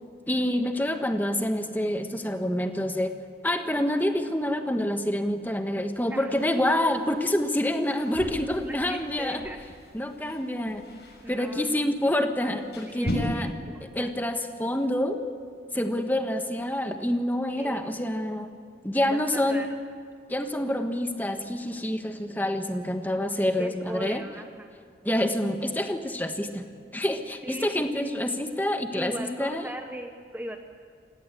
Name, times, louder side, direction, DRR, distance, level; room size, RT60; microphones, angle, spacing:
voice 1, 0.3-3.1 3.4-9.4 9.9-10.8 11.3-13.5 13.9-15.2 15.7-18.5 18.8-19.7 20.3-24.2 25.0-26.7 26.9-29.7, left 1 dB, 10° left, 6 dB, 1.3 m, -27 dB
sound 1, 6.3-13.1, equal, 70° left, 6.7 m, -41 dB
voice 2, 8.6-9.6 11.2-11.7 12.9-13.5 14.0-14.1 17.6-17.8 19.1-19.7 23.6-24.7 27.4-27.7 27.9-28.1 28.9-30.6, right 1 dB, 10° right, 5 dB, 0.9 m, -38 dB
28.0 x 17.0 x 8.4 m, 2.1 s
head